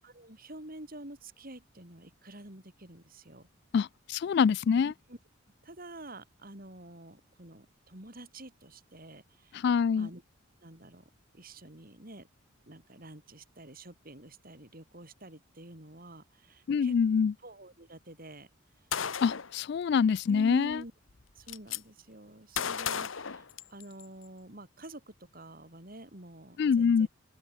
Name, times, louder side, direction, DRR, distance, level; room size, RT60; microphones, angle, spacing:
voice 1, 0.0-3.5 4.7-5.2 5.6-9.6 9.9-10.2 10.6-11.0 11.3-12.3 12.7-16.9 17.4-18.5 20.3-20.9 21.4-27.1, right 1 dB, 45° right, 5.1 m, -48 dB
voice 2, 3.7-4.9 9.6-10.1 16.7-17.3 19.2-20.8 26.6-27.1, left 6 dB, 55° left, 0.3 m, -25 dB
Gunshot gunfire, 18.9-19.5 20.7-20.8 21.1-21.8 22.6-24.0, left 7 dB, 75° left, 1.1 m, -34 dB
open air
head